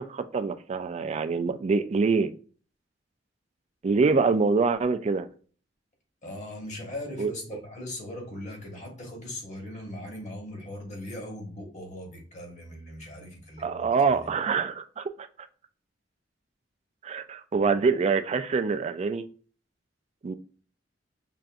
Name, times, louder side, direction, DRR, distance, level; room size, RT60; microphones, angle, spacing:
voice 1, 0.0-2.3 3.8-5.3 7.2-7.3 13.6-15.1 17.0-19.3 20.2-20.4, right 4 dB, 35° right, 0.3 m, -25 dB
voice 2, 6.2-14.3, left 1 dB, 40° left, 1.2 m, -39 dB
5.6 x 2.5 x 2.4 m
head